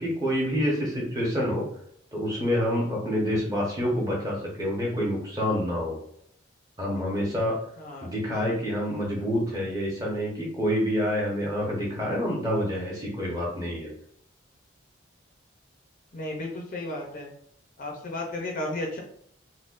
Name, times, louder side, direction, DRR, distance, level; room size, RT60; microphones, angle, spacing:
voice 1, 0.0-1.6 2.1-6.0 6.8-7.6 8.0-13.9, equal, 15° right, -3 dB, 0.9 m, -27 dB
voice 2, 7.8-8.1 16.1-17.3 17.8-19.0, left 1 dB, 40° left, 0 dB, 0.5 m, -33 dB
4.1 x 2.2 x 2.4 m, 0.65 s
head